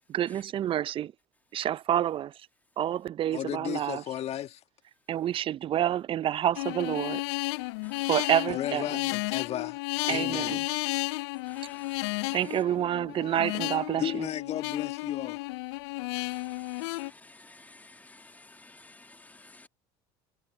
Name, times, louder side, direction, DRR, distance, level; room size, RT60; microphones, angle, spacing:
voice 1, 0.1-1.1 1.5-2.3 2.8-4.0 5.1-7.2 8.1-9.0 10.1-10.6 12.3-14.3, right 11 dB, 40° right, 0.5 m, -28 dB
voice 2, 3.3-4.6 8.5-10.7 14.0-15.4, left 11 dB, 50° left, 1.6 m, -34 dB
sound 1, 6.6-17.1, left 24 dB, 75° left, 0.4 m, -33 dB
voice 3, 7.8-8.3 11.4-12.6 16.1-19.7, left 2 dB, 10° left, 1.6 m, -53 dB
hypercardioid pair, 80°, 14 cm